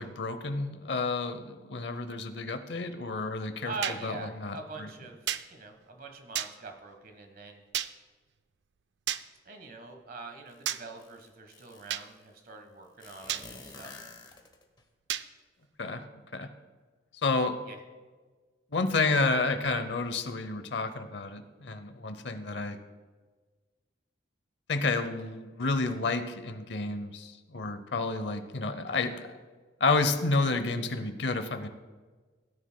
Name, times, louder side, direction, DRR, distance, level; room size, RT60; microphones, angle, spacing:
voice 1, 0.0-3.7 4.0-4.9 15.8-16.0 16.3-16.5 17.2-17.6 18.7-22.8 24.7-29.3 29.8-31.7, left 3 dB, 65° left, 10 dB, 0.7 m, -30 dB
voice 2, 3.6-7.6 9.4-13.9 17.7-17.8, right 3 dB, 55° right, 5 dB, 1.3 m, -43 dB
sound 1, 3.8-4.0 5.3-5.4 6.3-6.5 7.7-7.9 9.1-9.2 10.6-10.8 11.9-12.0 13.3-13.4 15.1-15.2, right 11 dB, 70° right, 0.4 m, -31 dB
sound 2, 10.5-10.6 11.0-12.1 13.0-14.8, left 3 dB, 25° left, 1.0 m, -49 dB
17.0 x 9.4 x 2.2 m, 1.4 s
head